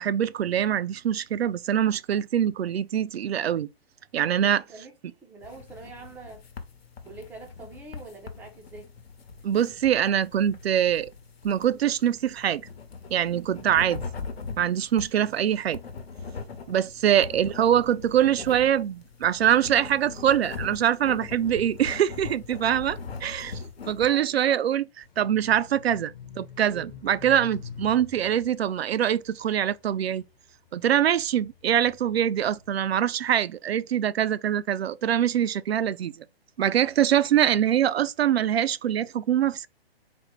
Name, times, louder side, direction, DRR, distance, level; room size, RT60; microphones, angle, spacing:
voice 1, 0.0-3.7 4.1-4.6 9.4-11.1 11.4-12.7 13.1-14.0 14.6-15.8 16.7-23.6 23.9-24.9 25.2-30.2 30.7-36.1 36.6-39.7, right 10 dB, 80° right, 0.5 m, -24 dB
voice 2, 4.4-5.0 5.2-6.4 7.0-8.9 17.1-17.3 24.0-24.4, right 3 dB, 5° right, 0.4 m, -44 dB
sound 1, 5.4-24.1, left 5 dB, 80° left, 1.0 m, -41 dB
sound 2, 25.0-30.5 31.1-32.9, left 7 dB, 50° left, 1.0 m, -46 dB
4.2 x 2.1 x 4.4 m
hypercardioid pair, 135°, 30 cm